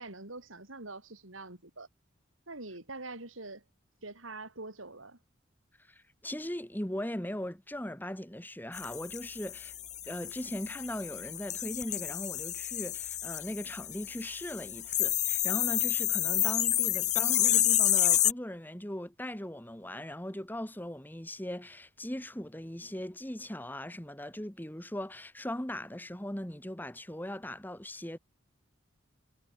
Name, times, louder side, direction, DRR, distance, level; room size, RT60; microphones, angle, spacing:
voice 1, 0.0-1.9 2.5-3.6 4.0-5.2, right 2 dB, 85° right, 6.7 m, -44 dB
voice 2, 5.8-9.7 10.1-28.2, left 1 dB, 10° left, 1.6 m, -39 dB
sound 1, 8.7-18.3, left 12 dB, 35° left, 1.7 m, -30 dB
head